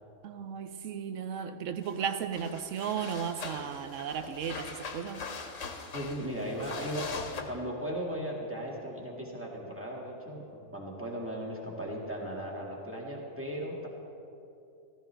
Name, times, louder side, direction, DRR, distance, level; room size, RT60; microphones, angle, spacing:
voice 1, 0.2-5.3, right 7 dB, 75° right, 10 dB, 1.0 m, -35 dB
sound 1, 1.8-2.0 2.3-7.4, left 5 dB, 75° left, 1.4 m, -41 dB
voice 2, 5.9-13.9, equal, 10° right, -4 dB, 1.9 m, -37 dB
14.5 x 14.5 x 3.4 m, 2.7 s
omnidirectional pair, 1.3 m